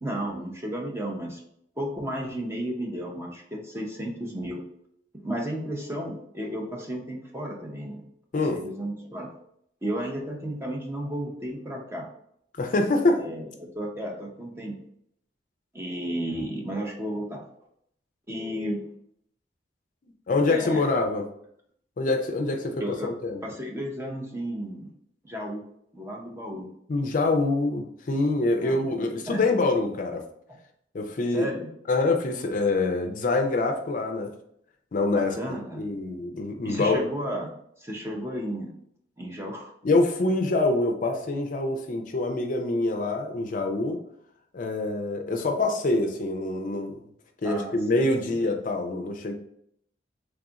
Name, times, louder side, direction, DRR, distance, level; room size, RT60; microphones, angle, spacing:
voice 1, 0.0-1.4 1.8-4.6 5.2-8.0 8.3-9.3 9.8-12.1 13.2-14.8 15.7-17.4 18.3-18.9 20.5-21.0 22.8-23.1 23.4-24.9 25.2-25.6 25.9-26.7 28.6-28.9 29.3-29.4 31.3-31.7 35.1-35.8 36.6-37.5 37.8-38.8 39.2-39.7 47.4-47.8, equal, 15° right, 0 dB, 0.6 m, -33 dB
voice 2, 12.6-13.2 20.3-21.3 22.0-23.4 26.9-30.3 30.9-31.4 31.9-34.3 34.9-35.3 35.7-37.0 39.8-44.0 44.5-47.0 47.4-49.3, left 2 dB, 45° left, 4 dB, 0.4 m, -25 dB
3.4 x 2.4 x 3.9 m, 0.70 s
head